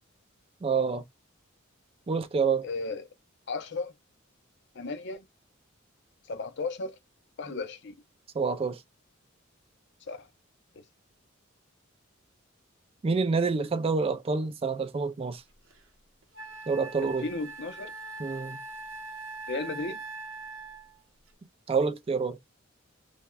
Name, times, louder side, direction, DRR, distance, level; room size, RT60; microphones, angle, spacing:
voice 1, 0.6-1.0 2.1-2.7 8.3-8.8 13.0-15.4 16.7-17.3 18.2-18.6 21.7-22.4, right 4 dB, 30° right, 0.3 m, -27 dB
voice 2, 2.6-3.1 3.5-3.9 4.7-5.3 6.2-7.0 7.4-8.0 10.1-10.3 10.7-10.8 17.0-17.9 19.5-20.0, left 3 dB, 60° left, 0.6 m, -35 dB
Wind instrument woodwind instrument, 15.7-15.8 16.3-21.0, right 3 dB, 70° right, 0.8 m, -42 dB
3.4 x 2.1 x 2.2 m
head